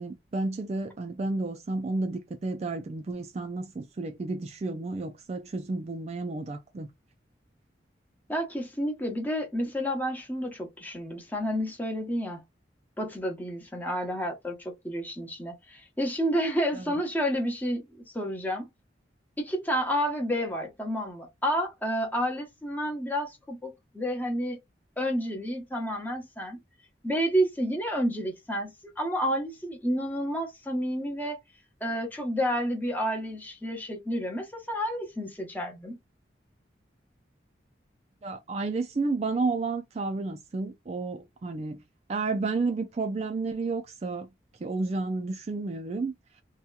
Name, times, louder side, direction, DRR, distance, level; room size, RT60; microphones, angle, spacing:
voice 1, 0.0-6.9 16.7-16.9 38.2-41.8 42.1-44.3 44.6-46.1, right 3 dB, 35° right, 0.3 m, -31 dB
voice 2, 8.3-12.4 13.0-17.9 18.1-18.7 19.4-24.6 25.0-26.6 27.0-31.4 31.8-36.0, equal, 10° left, 0.7 m, -30 dB
2.8 x 2.2 x 2.3 m
head